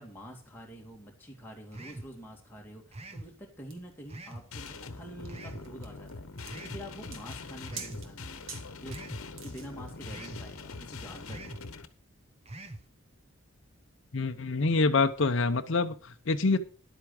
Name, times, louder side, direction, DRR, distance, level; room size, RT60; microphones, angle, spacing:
voice 1, 0.0-6.2 6.5-8.5 8.8-11.5, equal, 10° left, -1 dB, 2.3 m, -47 dB
sound 1, 1.7-2.1 2.9-3.3 4.1-4.5 5.3-5.7 6.5-6.8 7.7-8.0 8.9-9.2 10.1-10.4 11.3-11.6 12.5-12.8, right 1 dB, 30° right, 0.9 m, -43 dB
sound 2, 3.7-9.9, right 6 dB, 65° right, 1.8 m, -48 dB
sound 3, 4.5-11.8, left 3 dB, 80° left, 1.0 m, -43 dB
voice 2, 14.1-16.6, left 3 dB, 60° left, 6 dB, 0.7 m, -26 dB
11.0 x 8.2 x 4.9 m, 0.38 s
head